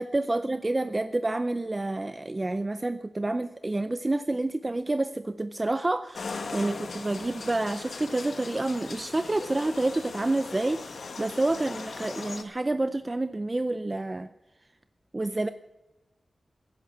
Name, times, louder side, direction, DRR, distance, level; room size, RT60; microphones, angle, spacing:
voice 1, 0.0-14.3 15.1-15.5, right 2 dB, 25° right, 12 dB, 0.5 m, -28 dB
sound 1, 6.1-12.4, left 4 dB, 85° left, 1.6 m, -39 dB
15.5 x 11.0 x 7.9 m, 1.0 s
wide cardioid pair, 110°, 0 cm